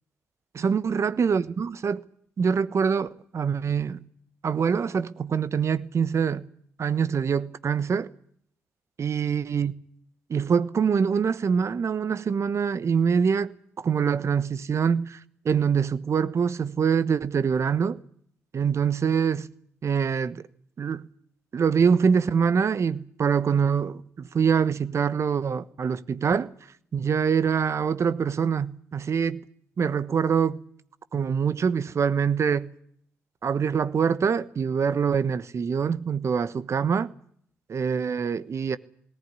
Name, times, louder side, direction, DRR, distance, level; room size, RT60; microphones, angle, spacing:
voice 1, 0.5-2.0 2.4-4.0 4.4-6.4 6.8-8.1 9.0-9.7 10.3-13.5 13.8-18.0 18.5-19.5 19.8-20.4 20.8-21.1 21.5-26.5 26.9-29.4 29.8-30.6 31.1-32.7 33.4-37.1 37.7-38.8, right 6 dB, 55° right, 1.2 m, -24 dB
18.5 x 18.0 x 9.8 m
hypercardioid pair, 45°, 6 cm